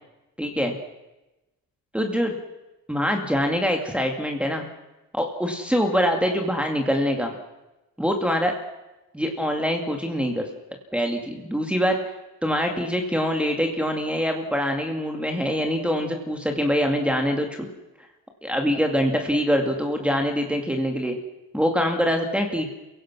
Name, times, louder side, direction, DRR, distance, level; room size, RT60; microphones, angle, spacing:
voice 1, 0.4-0.7 1.9-2.4 2.9-4.7 5.1-7.3 8.0-8.5 9.1-10.5 10.9-12.1 12.4-17.7 18.4-21.2 21.5-22.7, equal, 5° right, 2 dB, 2.2 m, -24 dB
29.0 x 17.0 x 6.2 m, 1.0 s
cardioid pair, 145°, 38 cm